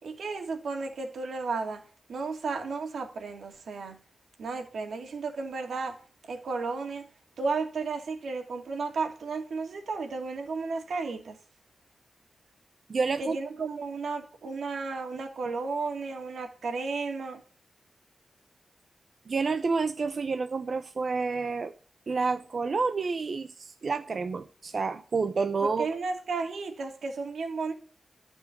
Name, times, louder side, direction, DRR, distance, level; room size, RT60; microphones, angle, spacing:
voice 1, 0.0-1.8 2.1-4.0 4.4-6.0 6.3-7.1 7.4-11.4 13.2-17.4 25.6-27.7, right 4 dB, 90° right, 2.6 m, -33 dB
voice 2, 12.9-13.4 19.3-21.7 22.1-25.9, right 4 dB, 45° right, 0.7 m, -29 dB
13.0 x 5.4 x 8.3 m
wide cardioid pair, 170°, 0 cm